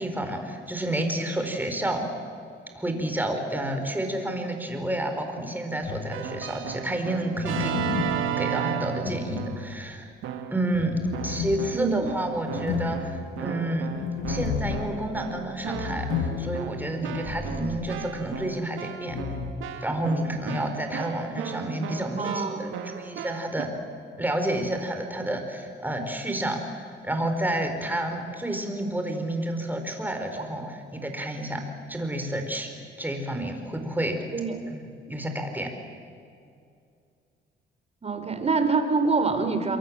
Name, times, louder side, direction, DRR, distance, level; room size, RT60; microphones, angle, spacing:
voice 1, 0.0-2.1 2.7-7.9 8.4-10.1 10.5-11.0 11.2-13.9 14.3-19.2 19.8-23.7 24.2-31.6 31.9-32.7 33.0-34.2 34.7-34.8 35.1-35.7, right 1 dB, 10° right, 4 dB, 4.6 m, -30 dB
sound 1, 5.8-6.5 7.3-10.1 10.7-17.0 17.2-17.3 19.1-19.5, left 7 dB, 80° left, 1.9 m, -33 dB
Keyboard (musical), 6.1-9.8 10.2-10.7 11.1-23.6, right 8 dB, 85° right, 1.9 m, -35 dB
voice 2, 11.7-12.1 22.2-22.7 30.4-30.5 34.3-34.6 38.0-39.8, right 4 dB, 30° right, 7 dB, 3.5 m, -25 dB
sound 2, 14.2-15.7 17.2-18.7, left 1 dB, 20° left, 4.6 m, -40 dB
27.5 x 23.0 x 7.6 m, 2.4 s
cardioid pair, 90°, 20 cm